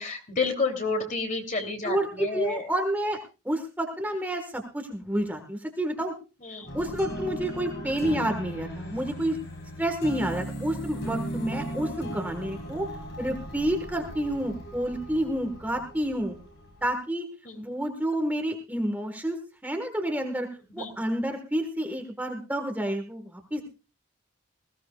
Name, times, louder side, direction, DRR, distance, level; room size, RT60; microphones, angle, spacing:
voice 1, 0.0-2.7 6.4-6.8 13.2-13.3 17.4-17.6 20.8-20.9, left 3 dB, 35° left, 4 dB, 2.9 m, -30 dB
voice 2, 1.8-3.2 3.4-6.1 6.7-9.4 9.8-12.9 13.2-16.4 16.8-17.2 17.6-19.4 19.6-20.5 20.7-23.6, right 1 dB, 10° right, 4 dB, 1.4 m, -29 dB
sound 1, 6.7-16.9, right 1 dB, 55° left, 4.0 m, -37 dB
20.0 x 16.0 x 2.3 m, 0.31 s
head